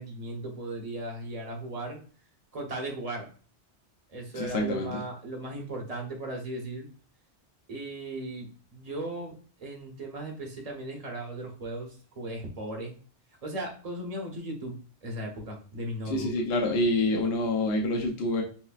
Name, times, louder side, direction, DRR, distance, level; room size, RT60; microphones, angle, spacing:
voice 1, 0.0-2.0 2.5-3.3 4.1-6.9 7.7-9.3 9.6-12.9 13.4-14.8 15.0-16.3, right 1 dB, 35° right, 1 dB, 1.0 m, -37 dB
voice 2, 4.3-4.9 16.1-18.4, left 1 dB, 70° left, 1 dB, 0.9 m, -27 dB
5.8 x 2.1 x 2.4 m, 0.39 s
omnidirectional pair, 1.1 m